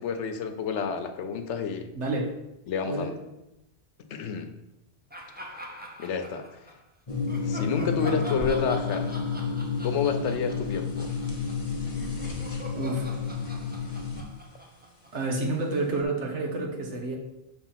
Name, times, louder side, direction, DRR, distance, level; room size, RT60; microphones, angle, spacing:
voice 1, 0.0-1.9 2.7-3.2 4.1-4.5 6.0-6.4 7.5-9.2 9.8-11.2, left 6 dB, 85° left, 8 dB, 1.0 m, -29 dB
voice 2, 1.9-2.3 2.9-3.1 12.8-13.1 15.1-17.2, right 2 dB, 80° right, 1 dB, 1.5 m, -29 dB
sound 1, 5.1-6.8 7.3-15.5, equal, 10° right, 0.6 m, -43 dB
sound 2, 7.1-14.2, left 5 dB, 30° left, 1.1 m, -30 dB
6.6 x 3.6 x 5.7 m, 0.91 s
omnidirectional pair, 1.2 m